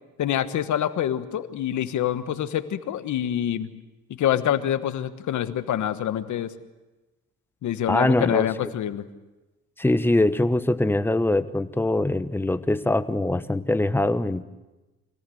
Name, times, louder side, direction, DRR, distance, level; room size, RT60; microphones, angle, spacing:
voice 1, 0.2-3.7 4.1-6.5 7.6-9.0, left 10 dB, 75° left, 11 dB, 1.4 m, -26 dB
voice 2, 7.9-8.5 9.8-14.4, left 1 dB, 5° left, 11 dB, 1.0 m, -23 dB
25.0 x 17.5 x 7.8 m, 1.1 s
cardioid pair, 90°, 30 cm